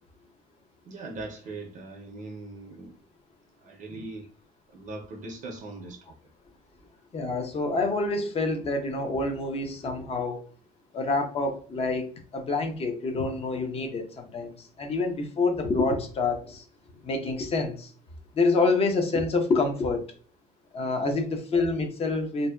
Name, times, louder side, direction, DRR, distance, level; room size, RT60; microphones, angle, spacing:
voice 1, 0.9-2.9 3.6-4.2 4.7-6.0, right 2 dB, 50° right, 0.5 m, -40 dB
voice 2, 7.1-10.4 10.9-16.6 17.0-17.9 18.3-20.0 20.7-22.5, left 3 dB, 35° left, 0.6 m, -27 dB
2.6 x 2.1 x 2.2 m
cardioid pair, 110°, 17 cm